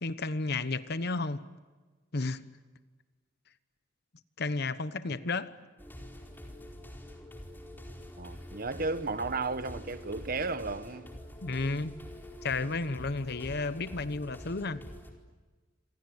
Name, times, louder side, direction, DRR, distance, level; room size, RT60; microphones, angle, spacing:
voice 1, 0.0-1.4 2.1-2.4 4.4-5.5 11.4-11.9 12.4-14.8, left 3 dB, 60° left, 1.1 m, -32 dB
sound 1, 5.8-15.1, equal, 10° left, 4.5 m, -46 dB
voice 2, 8.2-11.1, right 3 dB, 50° right, 1.3 m, -34 dB
28.0 x 27.0 x 7.9 m
head